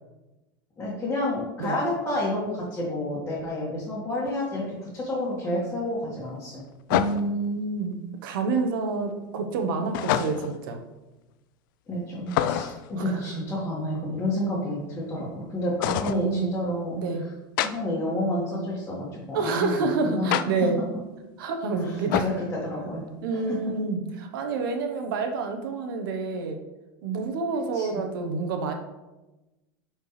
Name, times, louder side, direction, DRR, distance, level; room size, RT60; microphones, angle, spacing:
voice 1, 0.8-6.6 11.9-17.3 17.6-19.8 20.0-20.4 21.8-23.0 23.5-23.6 27.7-28.0, left 1 dB, 15° left, -8 dB, 1.9 m, -30 dB
sound 1, 4.3-4.4 6.9-7.5 9.9-10.6 12.3-12.9 15.8-16.2 17.6-17.7 20.3-20.5 22.1-22.4, left 11 dB, 70° left, 0.4 m, -26 dB
voice 2, 6.9-10.8 13.0-13.2 16.1-16.6 17.0-17.2 19.3-20.8 21.4-22.3 23.2-26.6 27.0-28.7, right 4 dB, 80° right, 5 dB, 1.1 m, -28 dB
10.0 x 4.4 x 3.3 m, 1.1 s
supercardioid pair, 140°, 11 cm